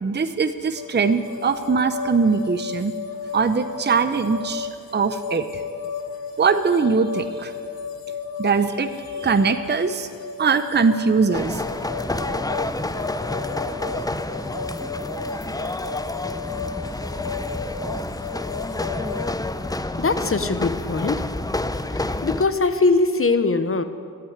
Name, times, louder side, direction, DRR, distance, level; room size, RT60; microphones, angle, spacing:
voice 1, 0.0-2.9 3.3-5.6 6.4-7.5 8.4-10.1 10.4-11.6, right 5 dB, 30° right, 9 dB, 0.7 m, -21 dB
sound 1, 0.8-19.3, left 5 dB, 85° left, 1.3 m, -34 dB
sound 2, 11.3-22.5, left 2 dB, 10° left, 0.6 m, -29 dB
voice 2, 20.0-21.2 21.9-23.8, left 3 dB, 40° left, 10 dB, 1.0 m, -21 dB
13.0 x 9.6 x 9.5 m, 2.2 s
cardioid pair, 70°, 35 cm